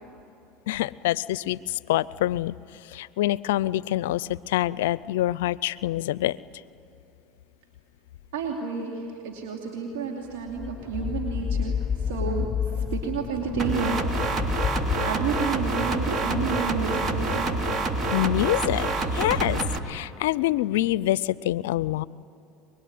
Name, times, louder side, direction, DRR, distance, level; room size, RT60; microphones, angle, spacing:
voice 1, 0.7-2.6 2.8-6.4 18.1-22.0, left 14 dB, 80° left, 20 dB, 0.5 m, -26 dB
voice 2, 8.3-14.5 14.9-17.5, right 5 dB, 80° right, 0 dB, 2.8 m, -31 dB
sound 1, 10.3-19.2, left 7 dB, 20° left, 3.5 m, -32 dB
sound 2, 13.6-19.8, right 3 dB, 35° right, 2.6 m, -27 dB
24.0 x 21.5 x 9.4 m, 2.9 s
hypercardioid pair, 90°, 0 cm